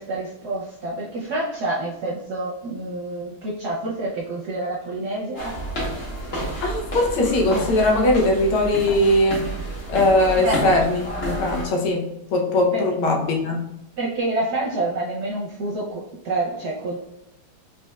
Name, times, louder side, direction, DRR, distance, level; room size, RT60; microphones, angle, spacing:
voice 1, 0.0-5.5 10.4-10.6 12.7-12.8 14.0-17.0, right 2 dB, 65° right, -4 dB, 1.0 m, -27 dB
sound 1, 5.3-11.6, right 1 dB, 40° left, 1.0 m, -30 dB
voice 2, 6.6-9.5 9.9-13.7, left 1 dB, 80° left, 0 dB, 1.7 m, -20 dB
4.1 x 3.5 x 2.3 m, 0.90 s
omnidirectional pair, 2.4 m